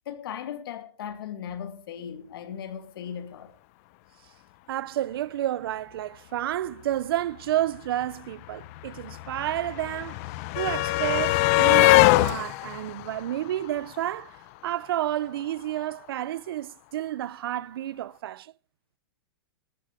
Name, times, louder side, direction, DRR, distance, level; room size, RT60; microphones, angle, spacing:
voice 1, 0.1-3.6, left 8 dB, 60° left, 2.7 m, -37 dB
voice 2, 4.7-10.2 10.6-14.4 14.6-18.5, right 13 dB, 65° right, 0.6 m, -30 dB
sound 1, 7.8-7.9 8.0-14.2 15.4-15.5 15.8-15.9, left 19 dB, 35° left, 0.7 m, -23 dB
14.0 x 14.0 x 5.2 m
hypercardioid pair, 155°, 13 cm